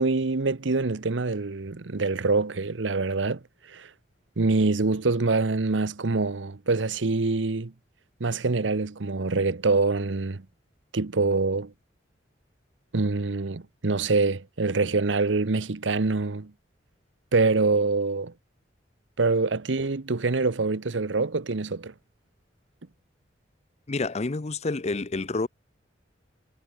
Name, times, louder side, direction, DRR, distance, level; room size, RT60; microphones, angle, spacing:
voice 1, 0.0-3.4 3.7-3.9 4.4-7.7 8.2-10.4 10.9-11.7 12.9-16.5 17.3-18.3 19.2-21.9, right 3 dB, 80° right, 0.9 m, -25 dB
voice 2, 23.9-25.5, left 3 dB, 35° left, 0.7 m, -28 dB
head